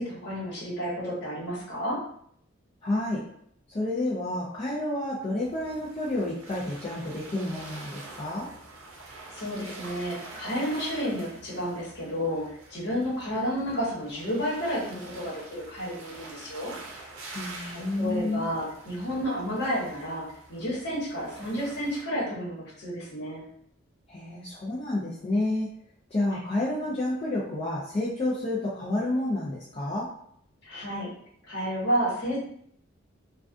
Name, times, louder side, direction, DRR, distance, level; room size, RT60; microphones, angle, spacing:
voice 1, 0.0-2.0 9.3-16.7 17.3-20.2 20.5-23.4 30.6-31.1 31.5-32.4, equal, 55° left, -7 dB, 1.1 m, -31 dB
voice 2, 2.8-3.2 3.7-8.5 17.3-18.5 24.1-25.7 26.1-30.1, left 1 dB, 30° left, -7 dB, 0.4 m, -30 dB
sound 1, 5.4-22.0, right 2 dB, 90° right, 0.6 m, -46 dB
2.4 x 2.3 x 2.4 m, 0.66 s
head